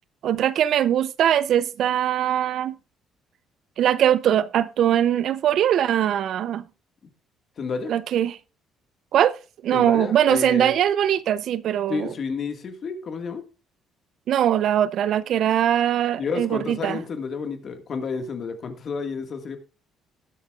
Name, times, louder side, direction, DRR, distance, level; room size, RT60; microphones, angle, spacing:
voice 1, 0.2-2.7 3.8-6.6 7.9-8.4 9.1-9.4 9.6-12.1 14.3-17.0, right 10 dB, 60° right, 0.5 m, -21 dB
voice 2, 7.6-7.9 9.7-10.8 11.9-13.4 16.2-19.6, left 5 dB, 45° left, 1.8 m, -30 dB
19.0 x 8.4 x 2.4 m
cardioid pair, 115°, 0 cm